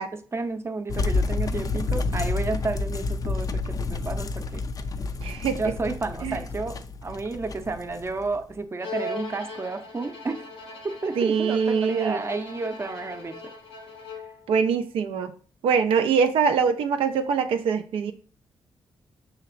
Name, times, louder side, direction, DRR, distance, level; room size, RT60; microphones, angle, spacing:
voice 1, 0.0-4.6 5.6-10.5 10.8-13.5, right 3 dB, 30° right, 7 dB, 0.5 m, -31 dB
sound 1, 0.9-8.5, left 3 dB, 40° left, 0.4 m, -29 dB
voice 2, 5.2-5.6 6.2-6.4 11.2-12.2 14.5-15.3 15.6-18.1, right 6 dB, 80° right, 6 dB, 0.4 m, -23 dB
Bowed string instrument, 8.8-14.5, left 2 dB, 80° left, 0.7 m, -39 dB
5.7 x 2.8 x 2.5 m, 0.41 s
cardioid pair, 70°, 9 cm